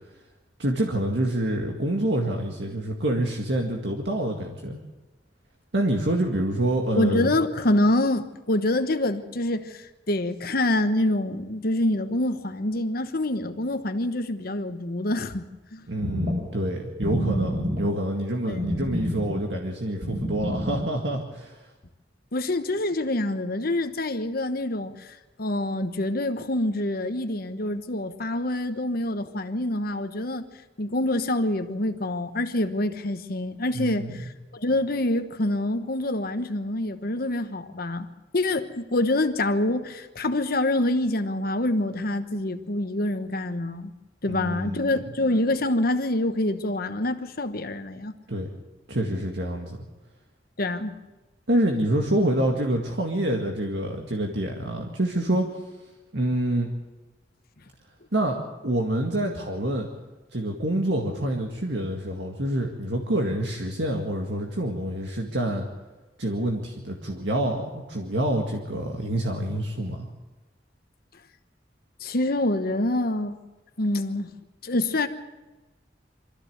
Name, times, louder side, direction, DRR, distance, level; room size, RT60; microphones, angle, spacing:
voice 1, 0.6-4.8 5.7-7.3 15.9-21.6 33.7-34.3 44.3-45.0 48.3-48.5 48.9-49.8 51.5-55.6 56.1-56.7 58.1-58.4 58.6-59.9 60.3-65.7 66.2-70.1, right 1 dB, 70° right, 2.0 m, -27 dB
voice 2, 7.0-15.4 15.7-15.9 18.5-18.6 22.3-30.5 30.8-38.1 38.3-43.9 44.2-48.1 50.6-51.0 72.0-73.4 73.8-74.3 74.6-75.1, left 1 dB, 55° left, 1.2 m, -26 dB
sound 1, 16.0-21.0, equal, 50° right, 7.6 m, -29 dB
24.0 x 14.5 x 8.0 m
head